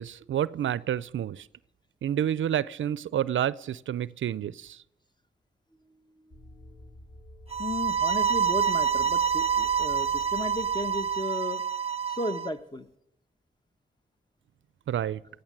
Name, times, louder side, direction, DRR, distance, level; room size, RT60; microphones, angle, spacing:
voice 1, 0.0-1.5 2.0-4.8 14.9-15.2, right 10 dB, 75° right, 20 dB, 0.5 m, -29 dB
voice 2, 6.2-6.8 7.6-11.6 12.1-12.9, left 2 dB, 20° left, 10 dB, 1.1 m, -35 dB
sound 1, 6.3-11.3, equal, 50° left, 1.9 m, -50 dB
sound 2, 7.5-12.5, right 7 dB, 30° right, 0.9 m, -27 dB
18.0 x 6.6 x 9.4 m, 0.81 s
cardioid pair, 45°, 20 cm